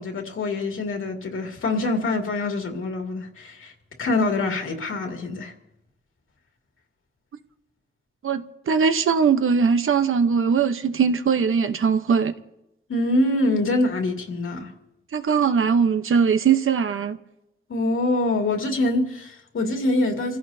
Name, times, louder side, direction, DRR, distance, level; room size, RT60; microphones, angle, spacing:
voice 1, 0.0-3.7 4.0-5.5 12.9-14.7 17.7-20.4, left 2 dB, 80° left, 2.4 m, -24 dB
voice 2, 8.2-12.3 15.1-17.2, right 6 dB, 80° right, 1.0 m, -20 dB
28.0 x 16.0 x 2.8 m
wide cardioid pair, 175°, 21 cm